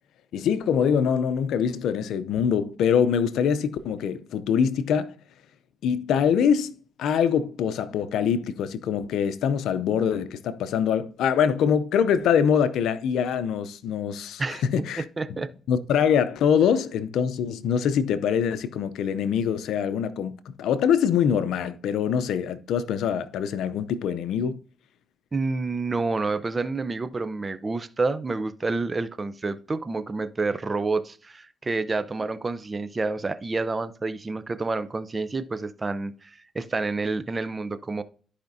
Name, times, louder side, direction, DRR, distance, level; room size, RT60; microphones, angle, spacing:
voice 1, 0.3-5.1 5.8-6.7 7.0-15.0 15.7-24.6, left 7 dB, 80° left, 0.6 m, -24 dB
voice 2, 15.2-15.5 25.3-38.0, right 3 dB, 25° right, 0.6 m, -29 dB
13.0 x 5.0 x 2.7 m
cardioid pair, 90°, 0 cm